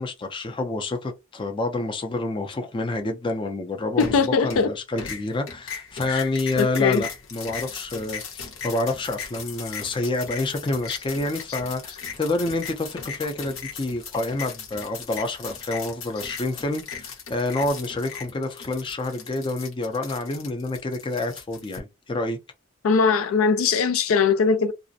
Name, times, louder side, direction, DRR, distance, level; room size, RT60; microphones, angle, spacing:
voice 1, 0.0-22.4, left 2 dB, 25° left, 0.4 m, -28 dB
voice 2, 4.0-4.7 6.1-6.2 6.6-7.0 10.9-11.0 22.8-24.7, left 5 dB, 85° left, 0.4 m, -21 dB
sound 1, 4.0-4.7 5.0-21.8, left 6 dB, 65° left, 0.8 m, -38 dB
2.4 x 2.0 x 2.6 m
head